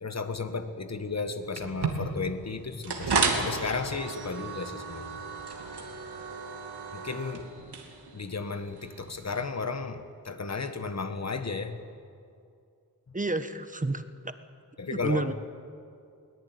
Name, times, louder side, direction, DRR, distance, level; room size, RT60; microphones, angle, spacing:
voice 1, 0.0-5.2 6.9-7.5 8.1-11.8 14.8-15.3, left 4 dB, 40° left, 9 dB, 1.6 m, -34 dB
sound 1, 1.6-9.5, right 4 dB, 85° right, 2.7 m, -33 dB
voice 2, 13.1-14.3 14.9-15.3, right 2 dB, 20° right, 10 dB, 1.2 m, -30 dB
22.0 x 18.5 x 9.4 m, 2.4 s
wide cardioid pair, 95°, 39 cm